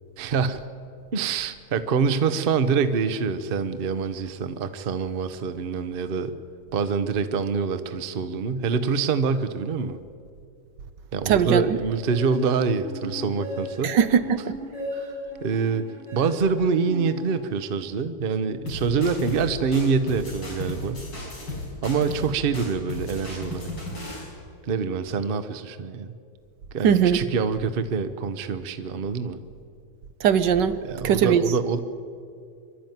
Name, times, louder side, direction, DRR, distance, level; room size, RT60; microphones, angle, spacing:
voice 1, 0.2-0.6 1.1-6.4 6.7-10.0 11.1-13.9 14.9-15.1 15.4-21.0 21.8-23.7 24.7-26.1 26.7-29.4 30.8-31.8, right 5 dB, 80° right, 11 dB, 0.5 m, -25 dB
voice 2, 11.3-11.6 13.8-14.6 26.8-27.2 30.2-30.8 31.0-31.4, right 8 dB, 65° right, 12 dB, 1.3 m, -20 dB
sound 1, 12.1-17.9, equal, 30° left, 6.4 m, -38 dB
sound 2, 18.7-19.5 19.7-22.3 22.5-24.3, left 2 dB, 55° left, 6.5 m, -34 dB
25.0 x 12.0 x 9.3 m, 2.4 s
omnidirectional pair, 2.3 m